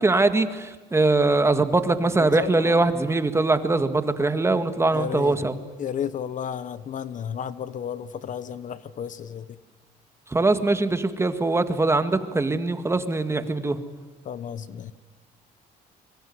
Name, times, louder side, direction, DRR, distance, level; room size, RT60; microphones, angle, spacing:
voice 1, 0.0-5.5 10.3-13.8, right 2 dB, 15° right, 9 dB, 1.8 m, -22 dB
voice 2, 2.2-2.9 4.9-5.4 5.8-9.6 14.2-14.9, left 8 dB, 50° left, 15 dB, 1.1 m, -33 dB
25.0 x 23.0 x 9.6 m, 1.2 s
cardioid pair, 110°, 17 cm